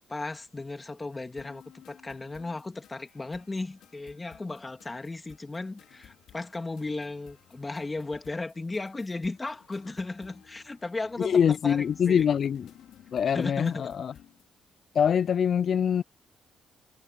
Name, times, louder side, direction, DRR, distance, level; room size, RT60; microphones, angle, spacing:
voice 1, 0.0-12.3 13.3-13.8, left 3 dB, 20° left, 2.5 m, -35 dB
sound 1, 1.4-14.5, left 11 dB, 75° left, 4.6 m, -56 dB
voice 2, 11.2-12.7 13.1-14.1 14.9-16.0, left 8 dB, 55° left, 0.3 m, -24 dB
cardioid pair, 90°, 0 cm